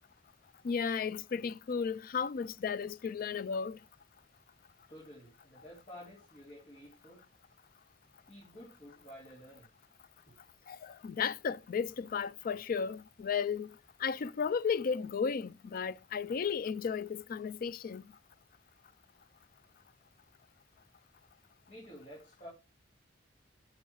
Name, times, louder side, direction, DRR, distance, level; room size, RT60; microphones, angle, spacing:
voice 1, 0.6-3.8 10.7-18.0, left 6 dB, 50° left, 0.4 m, -34 dB
voice 2, 4.9-7.2 8.3-9.7 10.3-10.4 21.7-22.5, equal, 35° left, 3.4 m, -51 dB
7.2 x 6.3 x 4.6 m
head